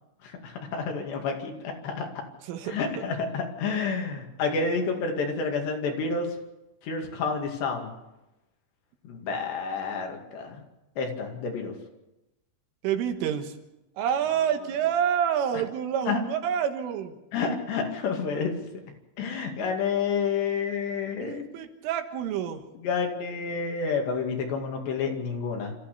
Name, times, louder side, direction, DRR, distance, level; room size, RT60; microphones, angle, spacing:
voice 1, 0.2-2.1 2.6-6.4 6.8-7.9 9.0-10.6 11.0-11.7 16.1-16.2 17.3-18.5 19.2-21.5 22.8-25.7, left 5 dB, 65° left, 2 dB, 4.3 m, -29 dB
voice 2, 2.4-3.0 12.8-13.6 14.0-17.2 21.2-22.6, right 9 dB, 85° right, 6 dB, 3.9 m, -28 dB
27.5 x 14.5 x 6.8 m, 0.96 s
omnidirectional pair, 5.7 m